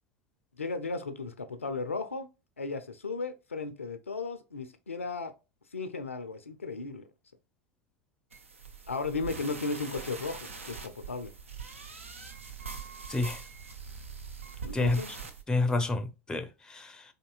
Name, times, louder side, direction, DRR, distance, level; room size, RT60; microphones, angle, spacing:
voice 1, 0.6-2.3 2.6-5.3 5.7-7.1 8.9-11.3 14.6-15.1, left 4 dB, 80° left, 0.4 m, -35 dB
sound 1, 8.3-15.4, right 5 dB, 80° right, 0.5 m, -43 dB
voice 2, 13.1-13.4 14.7-15.0 15.5-17.0, left 3 dB, 10° left, 0.5 m, -29 dB
4.3 x 2.6 x 2.2 m
figure-of-eight pair, 80°, 7 cm